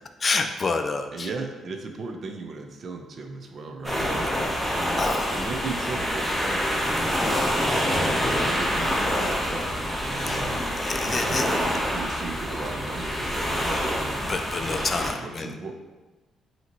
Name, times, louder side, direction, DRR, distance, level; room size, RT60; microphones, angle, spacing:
voice 1, 0.2-1.3 5.0-5.3 10.2-10.4 10.8-11.5 14.2-15.5, left 4 dB, 35° left, 7 dB, 0.4 m, -28 dB
voice 2, 1.1-4.3 5.3-7.6 8.3-9.7 10.0-10.6 11.0-14.3 14.7-15.8, right 3 dB, 50° right, 4 dB, 0.6 m, -37 dB
sound 1, 3.8-15.1, equal, ahead, 1.3 m, -26 dB
5.6 x 2.9 x 3.0 m, 1.2 s
cardioid pair, 90°, 0 cm